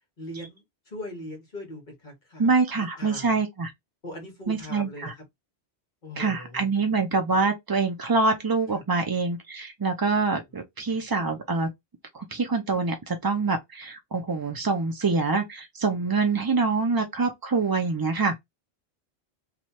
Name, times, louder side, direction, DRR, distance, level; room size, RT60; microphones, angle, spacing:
voice 1, 0.2-3.3 4.0-5.2 6.0-6.7 8.7-8.8 10.9-11.0, left 1 dB, 50° left, 1.3 m, -40 dB
voice 2, 2.4-3.7 4.5-5.1 6.2-11.7 12.1-18.4, right 4 dB, 40° right, 0.3 m, -25 dB
3.1 x 2.3 x 4.2 m
omnidirectional pair, 1.1 m